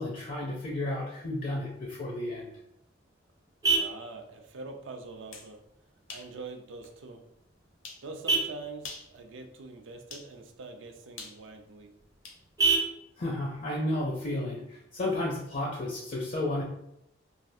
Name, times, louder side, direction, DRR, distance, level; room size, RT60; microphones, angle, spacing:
voice 1, 0.0-2.5 13.2-16.6, left 1 dB, 40° left, -1 dB, 0.4 m, -32 dB
Vehicle horn car horn honking, 2.4-15.4, right 4 dB, 15° right, 0.5 m, -35 dB
voice 2, 3.7-5.6 6.1-7.2 8.0-11.9, right 3 dB, 70° right, 5 dB, 0.4 m, -44 dB
sound 1, 5.1-5.5 6.1-6.3 6.8-6.9 7.8-8.1 8.7-9.1 10.1-10.3 11.2-12.4, left 4 dB, 80° left, 0.7 m, -44 dB
3.2 x 2.4 x 2.6 m, 0.81 s
head